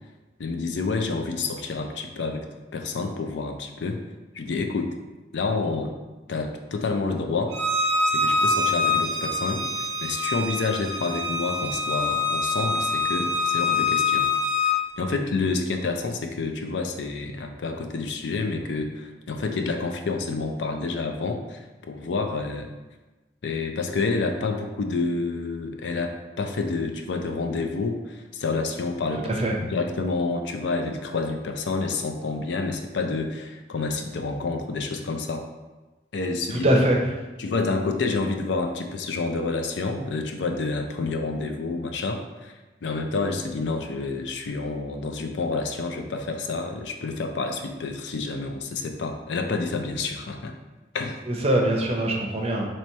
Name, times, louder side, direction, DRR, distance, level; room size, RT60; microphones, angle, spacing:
voice 1, 0.4-2.4 2.7-4.0 4.3-4.9 5.3-5.9 6.3-7.6 8.1-9.6 10.0-14.2 14.6-22.7 23.4-29.3 29.6-35.5 36.1-36.7 37.4-42.5 42.8-50.5 50.9-51.2, left 3 dB, 75° left, 5 dB, 0.4 m, -28 dB
Bowed string instrument, 7.5-14.8, left 3 dB, 75° right, 0.6 m, -25 dB
voice 2, 36.5-37.0 51.3-52.7, right 1 dB, 35° right, 0 dB, 0.6 m, -22 dB
3.0 x 3.0 x 4.4 m, 1.2 s
head